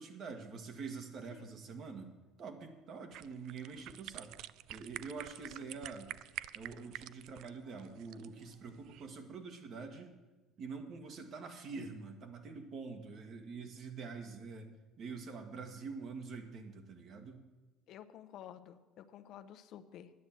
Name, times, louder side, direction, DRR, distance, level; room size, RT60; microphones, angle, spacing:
voice 1, 0.0-2.1 2.4-4.3 4.7-6.1 6.5-10.1 10.6-14.7 15.0-17.5, right 4 dB, 50° right, 5 dB, 1.8 m, -46 dB
sound 1, 3.1-9.1, right 14 dB, 65° right, 0.3 m, -48 dB
voice 2, 5.4-5.8 17.9-20.1, left 10 dB, 60° left, 10 dB, 0.8 m, -52 dB
9.6 x 9.4 x 7.6 m, 1.2 s
cardioid pair, 110°, 0 cm